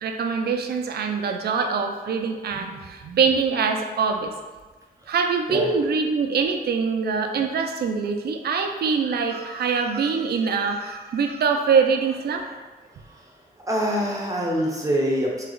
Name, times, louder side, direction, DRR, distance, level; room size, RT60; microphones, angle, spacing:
voice 1, 0.0-4.3 5.1-12.6, right 5 dB, 90° right, 5 dB, 0.5 m, -24 dB
voice 2, 13.7-15.4, equal, 20° right, -2 dB, 0.6 m, -24 dB
3.4 x 3.2 x 3.8 m, 1.3 s
wide cardioid pair, 135°, 16 cm